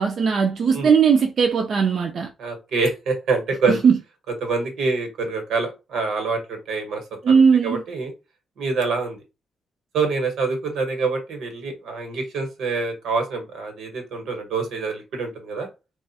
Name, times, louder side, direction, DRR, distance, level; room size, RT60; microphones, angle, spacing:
voice 1, 0.0-2.3 3.7-4.0 7.2-7.8, right 6 dB, 55° right, 0.4 m, -18 dB
voice 2, 2.4-3.9 4.4-8.1 8.6-9.2 9.9-15.7, right 4 dB, 85° right, 1.2 m, -26 dB
2.4 x 2.4 x 4.0 m
cardioid pair, 115°, 0 cm